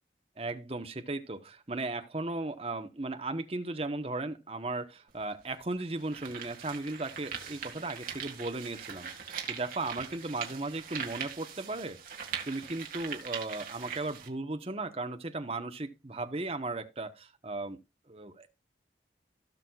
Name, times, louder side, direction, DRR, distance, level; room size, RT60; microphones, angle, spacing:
voice 1, 0.4-9.1 9.5-12.2 12.4-17.8 18.1-18.5, right 2 dB, 35° right, 1.0 m, -36 dB
sound 1, 5.1-5.2 5.8-14.3, right 7 dB, 50° right, 1.9 m, -41 dB
17.0 x 6.3 x 2.3 m
head